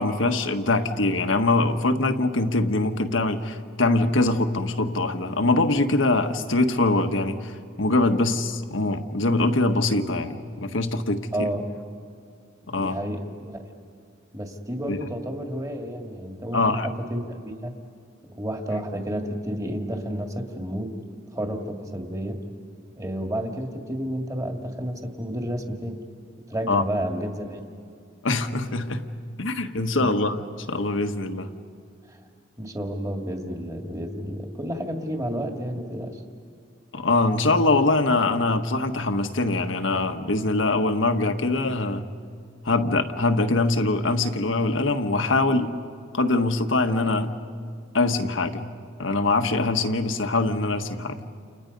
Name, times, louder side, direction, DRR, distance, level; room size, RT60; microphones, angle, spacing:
voice 1, 0.0-7.5 7.8-10.4 10.6-11.5 12.7-13.0 14.9-15.0 16.5-16.9 26.7-26.8 28.2-29.0 29.4-30.4 30.7-31.5 36.9-42.1 42.6-45.7 46.1-47.3 47.9-48.7 49.0-51.3, left 2 dB, 80° left, 6 dB, 1.5 m, -23 dB
voice 2, 11.3-11.6 12.7-13.6 14.3-17.7 18.3-20.9 21.3-22.4 23.0-26.0 26.5-27.6 30.0-30.1 32.1-32.2 32.6-36.2, equal, 15° right, 3 dB, 2.0 m, -31 dB
29.5 x 29.5 x 5.4 m, 2.3 s
head